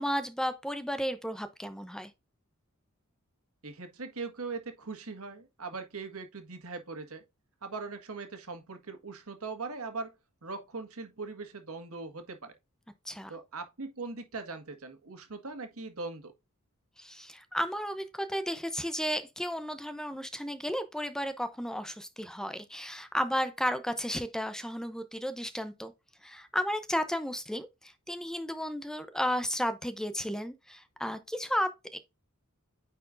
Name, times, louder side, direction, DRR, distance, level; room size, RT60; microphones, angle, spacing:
voice 1, 0.0-2.1 13.1-13.3 17.0-25.9 26.2-32.0, equal, 5° left, 0.6 m, -33 dB
voice 2, 3.6-7.2 7.6-10.1 10.4-12.5 13.3-16.3, right 4 dB, 85° right, 1.7 m, -40 dB
9.3 x 4.5 x 2.5 m
head